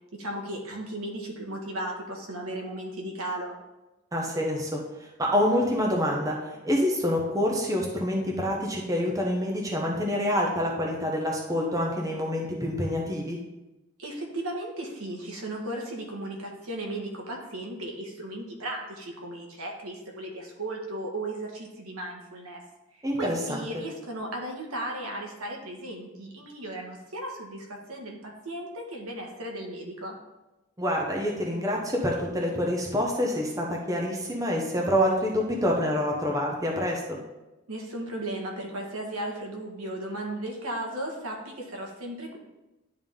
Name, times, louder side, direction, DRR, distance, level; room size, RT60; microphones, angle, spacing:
voice 1, 0.1-3.6 14.0-22.6 22.9-30.2 37.7-42.4, right 1 dB, 85° right, 0 dB, 1.5 m, -36 dB
voice 2, 4.1-13.4 23.0-23.7 30.8-37.2, equal, 15° right, -1 dB, 0.9 m, -27 dB
10.5 x 3.7 x 3.6 m, 1.0 s
head